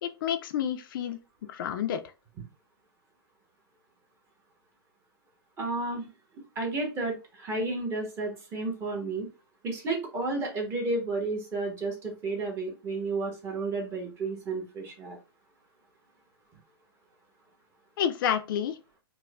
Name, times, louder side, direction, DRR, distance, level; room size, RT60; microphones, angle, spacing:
voice 1, 0.0-1.2 1.5-2.0 18.0-18.8, left 9 dB, 55° left, 0.4 m, -29 dB
voice 2, 5.6-6.1 6.6-9.3 9.6-15.2, right 3 dB, 20° right, 0.9 m, -32 dB
4.5 x 2.1 x 2.2 m
hypercardioid pair, 140°, 13 cm